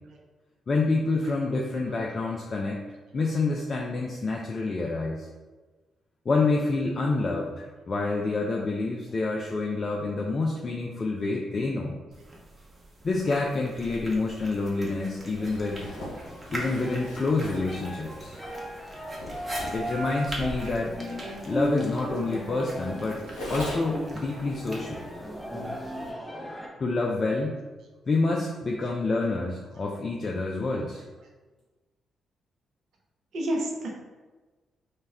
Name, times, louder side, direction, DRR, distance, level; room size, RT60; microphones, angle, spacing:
voice 1, 0.7-2.8 3.1-5.3 6.3-11.9 13.0-15.9 16.5-18.4 19.7-21.0 21.4-23.2 23.5-25.0 26.8-27.6 28.1-31.0, left 3 dB, 45° left, -1 dB, 0.3 m, -28 dB
sound 1, 12.1-26.1, right 1 dB, 35° right, 0.8 m, -44 dB
sound 2, 15.3-26.7, equal, 10° left, 0.6 m, -37 dB
Zipper (clothing), 15.4-24.1, equal, 85° left, 0.6 m, -40 dB
voice 2, 17.8-18.2 20.5-20.7 21.0-21.4 22.5-22.6 24.3-24.5 33.3-34.0, right 1 dB, 65° right, -2 dB, 0.5 m, -34 dB
2.2 x 2.0 x 3.4 m, 1.3 s
hypercardioid pair, 40°, 0 cm